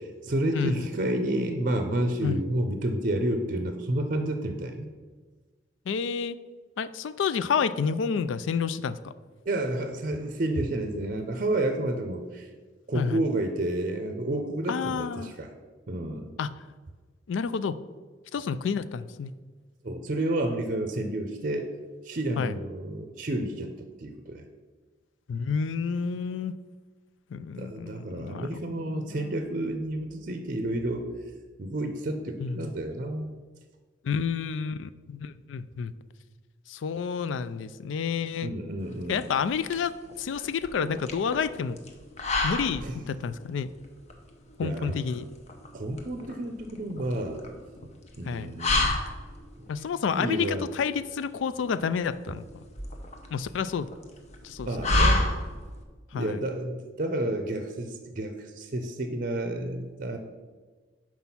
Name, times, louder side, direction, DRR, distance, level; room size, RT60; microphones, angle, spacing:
voice 1, 0.0-4.9 9.5-12.5 12.9-15.5 15.9-16.3 19.8-21.7 22.0-24.4 27.6-31.1 31.6-33.4 38.4-39.2 42.8-43.0 44.6-44.9 45.7-47.4 48.2-48.9 49.6-49.7 50.1-50.7 54.6-55.3 56.1-60.2, right 1 dB, 45° right, 6 dB, 0.6 m, -30 dB
voice 2, 0.5-0.9 2.2-2.4 5.9-6.4 6.8-9.1 12.9-13.2 14.7-15.3 16.4-16.5 17.3-17.8 18.3-19.3 22.4-22.5 25.3-26.5 27.3-29.4 32.4-32.6 34.0-35.9 36.7-38.5 39.1-39.9 40.2-41.8 42.4-43.7 44.6-45.3 48.3-48.5 49.7-50.5 50.8-52.4 53.3-53.9 54.4-54.7 56.1-56.4, left 6 dB, 85° left, 14 dB, 0.4 m, -29 dB
sound 1, 38.8-55.8, left 2 dB, 35° left, 0.8 m, -31 dB
6.0 x 4.6 x 5.6 m, 1.4 s
head